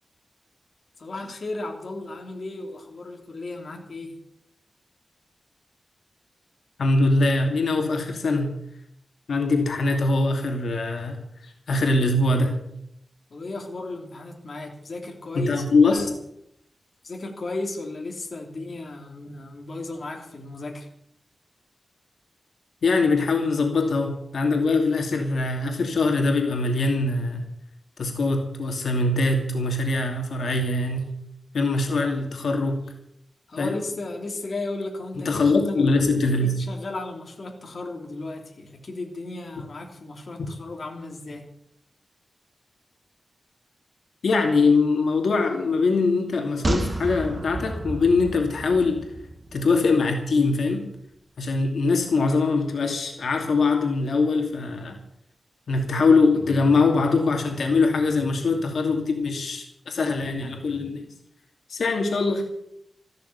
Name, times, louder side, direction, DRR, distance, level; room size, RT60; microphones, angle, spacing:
voice 1, 1.0-4.2 13.3-15.6 15.9-16.1 17.0-20.9 31.9-32.3 33.5-35.9 36.4-41.5, left 2 dB, 45° left, 1 dB, 3.2 m, -35 dB
voice 2, 6.8-8.5 9.3-12.6 15.3-16.1 22.8-27.5 28.0-31.1 31.5-32.8 33.6-33.8 35.3-36.6 44.2-49.1 49.5-50.9 51.4-55.0 55.7-61.0 61.7-62.4, left 3 dB, 80° left, 3 dB, 2.6 m, -22 dB
sound 1, 46.6-50.1 50.4-50.5, right 2 dB, 25° right, 1.4 m, -31 dB
14.5 x 12.5 x 7.1 m, 0.75 s
wide cardioid pair, 175°, 0 cm